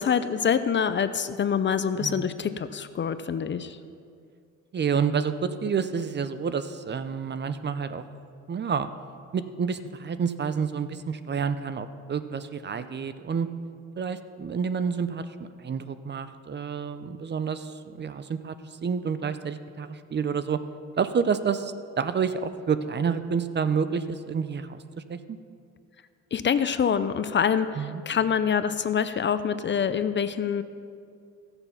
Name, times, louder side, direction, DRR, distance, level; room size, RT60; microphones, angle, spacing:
voice 1, 0.0-3.8 26.3-30.6, left 7 dB, 40° left, 12 dB, 0.5 m, -25 dB
voice 2, 4.7-8.0 8.5-8.9 9.3-13.5 14.0-15.2 15.6-18.5 18.8-20.6 21.0-24.8 25.1-25.4 27.8-28.0, right 6 dB, 35° right, 12 dB, 0.6 m, -29 dB
15.5 x 6.9 x 5.7 m, 2.4 s
cardioid pair, 90°, 30 cm